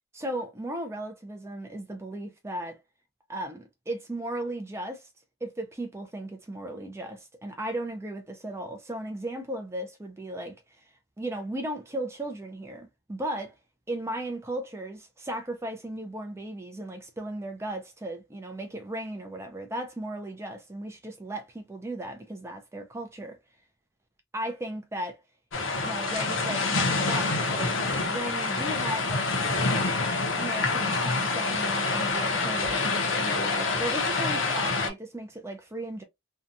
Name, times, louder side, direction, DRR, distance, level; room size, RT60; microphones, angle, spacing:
voice 1, 0.1-2.8 3.3-5.1 5.4-13.5 13.9-23.4 24.3-25.2 25.8-29.3 30.4-36.0, right 1 dB, 15° right, 0.4 m, -36 dB
sound 1, 25.5-34.9, left 3 dB, 65° left, 0.7 m, -27 dB
2.7 x 2.2 x 2.5 m
head